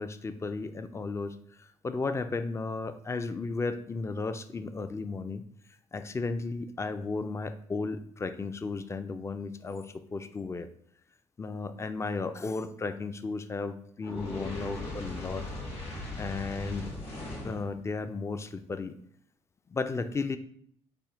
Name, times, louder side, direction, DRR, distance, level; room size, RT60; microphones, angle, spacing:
voice 1, 0.0-5.4 5.7-10.7 11.4-15.5 16.2-16.9 17.4-19.0 19.7-20.4, left 4 dB, 25° left, 10 dB, 0.3 m, -34 dB
Fire, 14.0-17.7, left 1 dB, 55° left, 1.4 m, -38 dB
3.4 x 2.2 x 3.6 m, 0.64 s
supercardioid pair, 65°, 12 cm